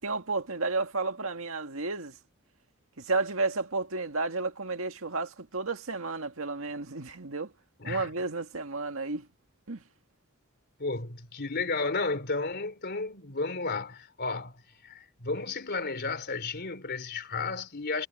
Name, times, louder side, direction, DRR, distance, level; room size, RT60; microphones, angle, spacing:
voice 1, 0.0-2.2 3.0-7.5 7.8-9.3 9.7-9.8, right 3 dB, 80° right, 2.0 m, -32 dB
voice 2, 7.8-8.1 10.8-18.1, left 3 dB, 55° left, 3.4 m, -33 dB
head